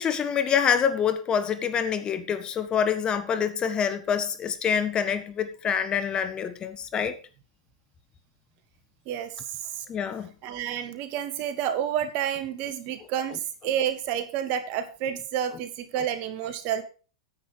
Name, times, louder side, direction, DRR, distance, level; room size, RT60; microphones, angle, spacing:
voice 1, 0.0-7.1 9.9-10.3, left 7 dB, 25° left, 1.4 m, -26 dB
voice 2, 9.0-9.8 10.4-16.8, right 9 dB, 50° right, 1.8 m, -30 dB
9.9 x 8.6 x 4.7 m
hypercardioid pair, 110°, 3 cm